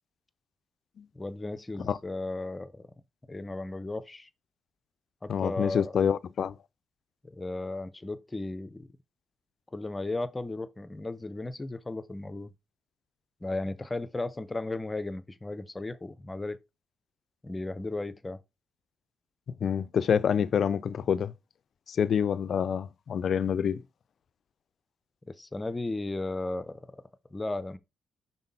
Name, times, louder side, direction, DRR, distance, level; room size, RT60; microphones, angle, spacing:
voice 1, 1.1-2.9 3.3-4.3 5.2-5.9 7.2-8.9 9.7-12.5 13.4-16.6 17.4-18.4 25.3-27.0 27.3-27.8, left 2 dB, 20° left, 0.7 m, -35 dB
voice 2, 5.3-6.6 19.6-21.3 21.9-23.8, left 7 dB, 55° left, 0.4 m, -27 dB
5.7 x 4.1 x 4.0 m
cardioid pair, 90°, 0 cm